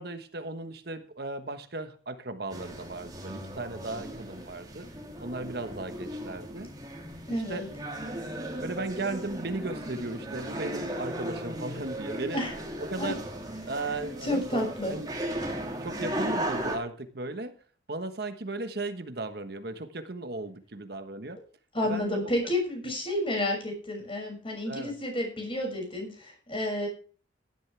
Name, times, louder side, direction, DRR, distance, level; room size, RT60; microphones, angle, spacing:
voice 1, 0.0-4.9 5.2-6.7 7.3-7.7 8.6-12.4 12.8-13.2 13.7-15.1 15.8-17.5 17.9-21.4 21.8-22.3 24.6-24.9, right 2 dB, 55° right, 8 dB, 1.2 m, -36 dB
sound 1, 2.5-16.8, right 1 dB, 20° right, 3.0 m, -36 dB
voice 2, 7.3-7.6 12.3-12.5 13.0-13.1 14.2-15.0 21.7-26.9, left 1 dB, 30° left, 2 dB, 6.4 m, -30 dB
16.5 x 12.0 x 3.4 m, 0.40 s
head